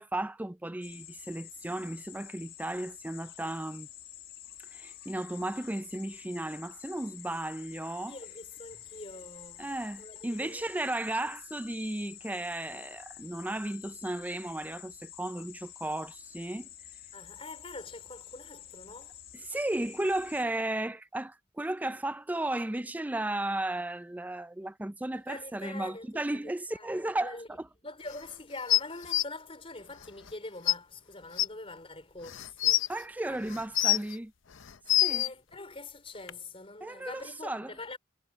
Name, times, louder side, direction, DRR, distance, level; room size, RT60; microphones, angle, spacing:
voice 1, 0.0-3.9 4.7-8.1 9.6-16.7 19.3-27.7 32.9-34.3 35.0-35.2 36.8-37.7, right 1 dB, 10° right, 0.4 m, -34 dB
sound 1, 0.8-20.4, left 12 dB, 55° left, 1.7 m, -49 dB
voice 2, 8.1-10.6 17.1-19.2 25.1-26.4 26.7-27.5 27.8-32.9 33.2-33.6 34.9-38.0, left 2 dB, 30° left, 4.1 m, -45 dB
sound 2, 28.7-29.2 30.3-30.4 30.7-30.8 31.4-31.5 32.3-32.9 33.5-34.1 34.6-35.3 36.3-36.4, left 14 dB, 80° left, 0.8 m, -25 dB
head